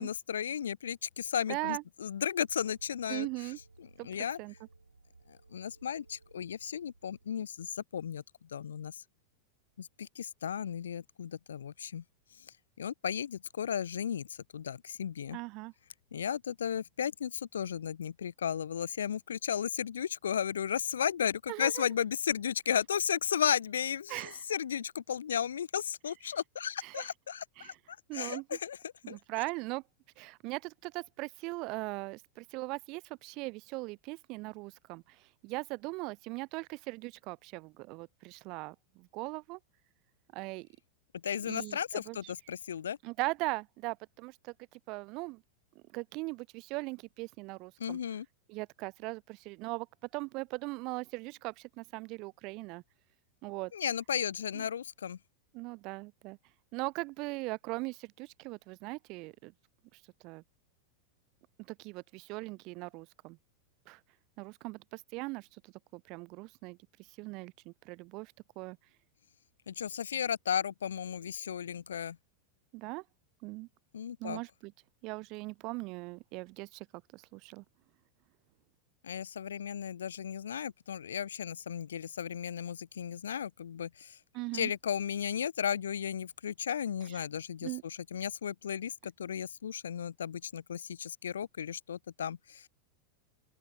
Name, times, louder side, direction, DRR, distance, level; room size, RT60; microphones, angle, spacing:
voice 1, 0.0-3.3 3.8-4.4 5.3-8.2 8.5-9.0 9.8-12.0 12.8-15.4 16.1-27.7 28.1-28.8 29.1-29.2 41.2-43.0 47.8-48.3 53.7-55.2 69.7-72.2 73.9-74.4 79.0-84.2 84.5-92.7, left 8 dB, 65° left, 1.6 m, -34 dB
voice 2, 1.5-1.8 3.1-3.6 4.0-4.1 4.4-4.5 15.3-15.7 21.5-21.8 24.1-24.4 26.8-27.1 27.6-27.8 28.1-28.6 29.0-29.8 30.2-35.2 35.4-39.6 40.3-40.7 41.4-42.3 43.0-44.5 44.9-45.4 45.9-48.0 48.5-49.9 50.1-52.8 53.4-53.7 54.5-54.6 55.5-56.4 56.7-59.5 60.2-60.4 61.7-63.4 63.9-64.0 64.4-66.8 67.2-68.8 72.7-73.0 73.4-73.7 74.2-74.7 75.0-76.9 77.1-77.6 84.3-84.7 87.1-87.2 87.6-87.8, right 25 dB, 40° right, 0.6 m, -39 dB
sound 1, 2.5-7.4, right 3 dB, 80° right, 5.7 m, -61 dB
open air
figure-of-eight pair, 90°, 0 cm